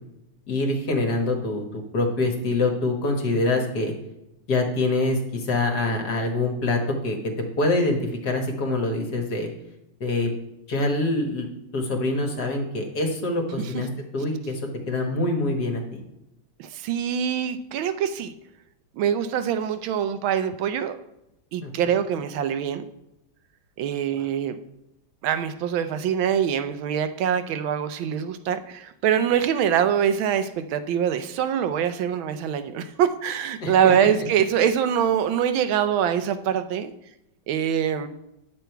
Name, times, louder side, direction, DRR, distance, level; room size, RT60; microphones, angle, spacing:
voice 1, 0.5-3.9 4.5-9.5 10.0-10.3 10.7-11.5 11.7-14.6 14.9-16.0 21.6-22.0 33.6-34.1, left 2 dB, 50° left, 3 dB, 1.7 m, -25 dB
voice 2, 16.6-18.3 19.0-21.0 21.5-22.8 23.8-24.6 25.2-36.9 37.5-38.1, right 9 dB, 75° right, 10 dB, 1.4 m, -24 dB
9.7 x 6.9 x 4.5 m, 0.89 s
omnidirectional pair, 2.3 m